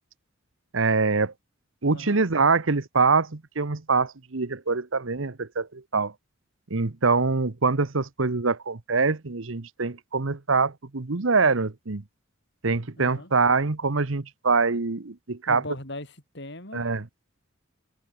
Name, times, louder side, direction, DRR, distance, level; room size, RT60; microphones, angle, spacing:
voice 1, 0.7-1.3 1.8-6.1 6.7-12.0 12.6-15.6 16.7-17.1, right 4 dB, 70° right, 1.1 m, -24 dB
voice 2, 1.9-2.3 13.0-13.3 15.5-16.8, left 2 dB, 55° left, 5.8 m, -39 dB
head